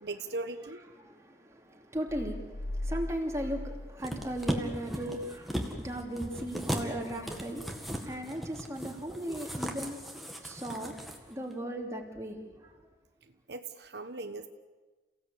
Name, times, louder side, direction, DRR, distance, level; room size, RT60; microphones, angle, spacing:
voice 1, 0.0-0.8 13.5-14.5, right 2 dB, 70° right, 8 dB, 1.1 m, -38 dB
voice 2, 0.9-12.7, right 1 dB, 15° right, 1 dB, 2.9 m, -37 dB
sound 1, 2.1-4.6 5.0-5.1, left 1 dB, 85° left, 2.1 m, -39 dB
sound 2, 4.0-11.2 11.5-11.6, equal, ahead, 2.0 m, -37 dB
29.0 x 16.5 x 8.5 m, 1.3 s
head